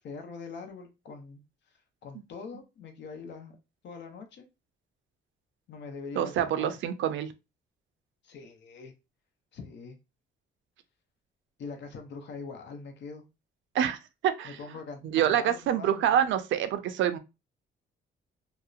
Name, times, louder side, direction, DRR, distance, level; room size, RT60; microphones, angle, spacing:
voice 1, 0.0-1.4 1.7-3.6 3.8-4.5 5.7-6.7 8.2-8.9 9.5-10.0 11.6-13.2 14.4-16.4, left 4 dB, 65° left, 0.7 m, -43 dB
voice 2, 6.2-7.3 13.7-14.0 14.2-14.6 15.0-17.2, right 10 dB, 75° right, 0.4 m, -26 dB
2.8 x 2.0 x 2.3 m
cardioid pair, 90°, 20 cm